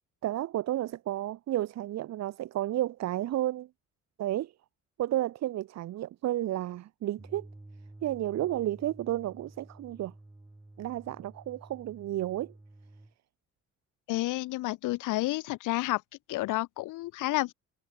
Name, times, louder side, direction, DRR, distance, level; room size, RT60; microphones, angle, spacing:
voice 1, 0.2-3.7 4.2-4.5 5.0-7.5 8.0-10.1 10.8-12.5, right 13 dB, 60° right, 0.7 m, -32 dB
sound 1, 7.2-13.1, right 2 dB, 10° right, 1.2 m, -52 dB
voice 2, 14.1-16.0 16.3-17.5, left 18 dB, 85° left, 0.7 m, -30 dB
cardioid pair, 90°, 30 cm